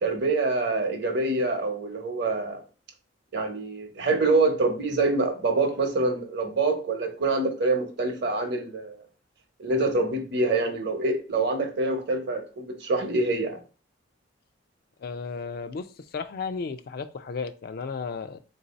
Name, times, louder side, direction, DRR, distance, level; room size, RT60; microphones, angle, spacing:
voice 1, 0.0-2.6 3.3-9.0 9.6-13.6, right 3 dB, 55° right, 0.9 m, -25 dB
voice 2, 15.0-15.9 16.1-18.4, left 5 dB, 50° left, 0.3 m, -34 dB
3.8 x 2.7 x 4.0 m
head